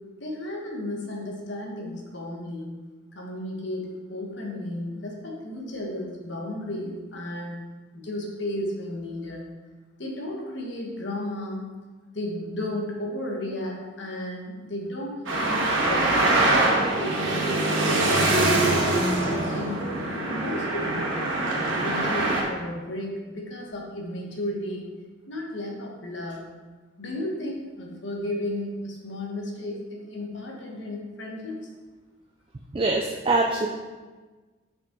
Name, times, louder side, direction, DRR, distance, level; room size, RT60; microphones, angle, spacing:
voice 1, 0.2-2.7 3.1-7.6 7.9-9.5 10.0-11.7 12.1-16.4 17.0-19.8 20.2-24.9 25.3-26.5 27.0-31.6, left 1 dB, 65° left, -1 dB, 1.3 m, -34 dB
Traffic noise roadway noise, 15.3-22.4, right 2 dB, 85° right, 1.3 m, -23 dB
voice 2, 32.7-33.7, right 2 dB, 25° right, 1 dB, 0.4 m, -23 dB
5.8 x 5.5 x 3.8 m, 1.3 s
head